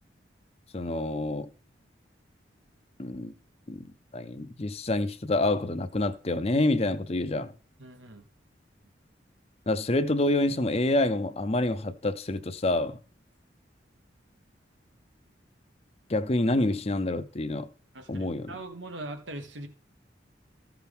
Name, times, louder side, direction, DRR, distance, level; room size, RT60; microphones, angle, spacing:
voice 1, 0.7-1.5 3.0-3.3 3.7-3.8 4.1-7.5 9.7-13.0 16.1-17.7 18.1-18.5, left 2 dB, 35° left, 0.6 m, -27 dB
voice 2, 7.8-8.2 17.9-19.7, right 2 dB, 85° right, 1.4 m, -41 dB
14.5 x 5.9 x 3.6 m
head